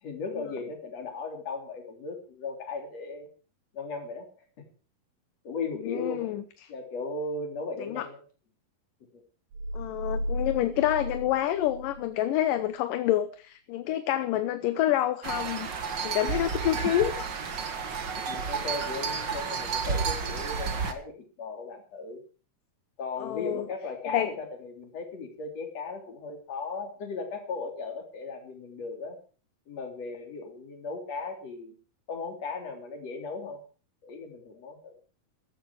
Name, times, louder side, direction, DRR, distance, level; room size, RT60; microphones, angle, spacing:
voice 1, 0.0-3.3 3.7-4.3 5.4-6.3 6.7-8.2 18.3-22.2 23.0-29.2 29.7-31.8 32.1-33.6 34.0-35.0, left 4 dB, 45° left, 3 dB, 4.2 m, -37 dB
voice 2, 5.8-6.7 7.8-8.1 9.7-15.7 16.0-17.3 23.2-23.7 24.1-24.3, left 13 dB, 70° left, 11 dB, 2.4 m, -28 dB
sound 1, 9.5-12.1 12.4-12.5, equal, 65° right, 5.9 m, -35 dB
sound 2, 15.2-20.9, right 6 dB, 45° right, 1.5 m, -31 dB
14.5 x 14.0 x 4.8 m, 0.39 s
omnidirectional pair, 4.3 m